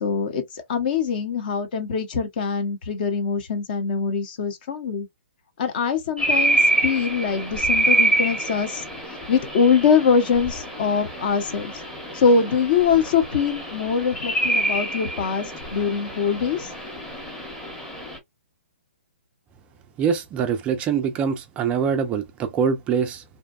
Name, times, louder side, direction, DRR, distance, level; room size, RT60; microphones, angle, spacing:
voice 1, 0.0-5.1 5.6-8.8 9.3-11.7 12.1-16.7, left 6 dB, 45° left, 0.7 m, -23 dB
sound 1, 6.2-18.2, right 1 dB, 5° left, 0.8 m, -26 dB
voice 2, 20.0-23.2, right 7 dB, 15° right, 0.3 m, -24 dB
2.7 x 2.1 x 2.3 m
figure-of-eight pair, 130°, 7 cm